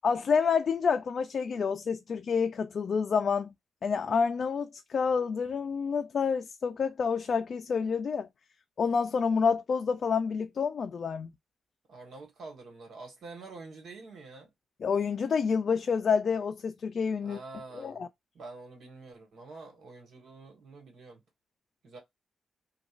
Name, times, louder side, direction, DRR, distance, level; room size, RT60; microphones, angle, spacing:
voice 1, 0.0-3.5 3.8-8.3 8.8-11.3 14.8-17.4 17.7-18.1, left 5 dB, 60° left, 0.3 m, -28 dB
voice 2, 11.9-14.5 17.2-18.1 18.3-21.2 21.8-22.0, right 3 dB, 75° right, 1.3 m, -47 dB
2.9 x 2.3 x 2.4 m
cardioid pair, 90°, 0 cm